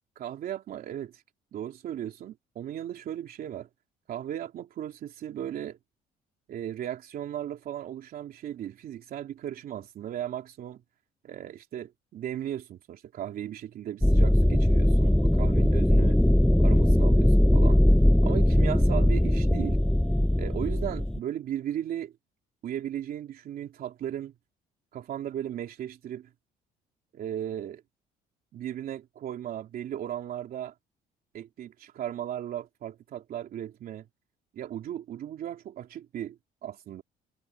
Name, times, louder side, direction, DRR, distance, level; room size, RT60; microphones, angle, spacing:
voice 1, 0.1-1.2 1.5-3.7 4.1-5.8 6.5-10.8 11.2-16.2 16.6-17.8 18.2-19.8 20.3-22.1 22.6-24.3 24.9-26.3 27.1-27.8 28.5-30.7 31.3-34.0 34.5-37.0, right 11 dB, 60° right, 3.3 m, -36 dB
sound 1, 14.0-21.2, left 1 dB, 5° left, 1.0 m, -21 dB
cardioid pair, 110°, 17 cm